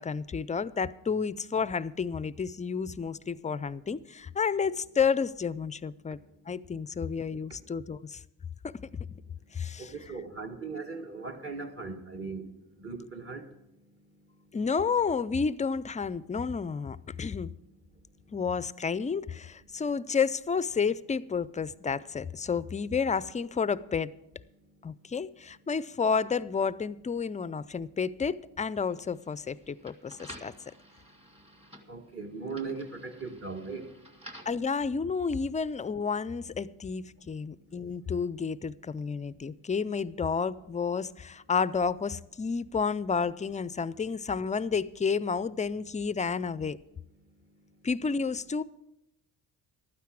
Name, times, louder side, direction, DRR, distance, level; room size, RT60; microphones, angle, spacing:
voice 1, 0.0-6.2 6.5-8.2 8.6-8.7 9.5-9.9 14.5-17.5 18.3-24.1 24.8-30.5 34.5-46.8 47.8-48.6, left 5 dB, 20° left, 0.3 m, -31 dB
voice 2, 9.8-12.5 12.8-13.5 31.9-33.9, right 4 dB, 35° right, 1.7 m, -38 dB
sound 1, 28.8-34.6, equal, 15° right, 1.9 m, -52 dB
12.5 x 9.3 x 6.1 m
cardioid pair, 85°, 38 cm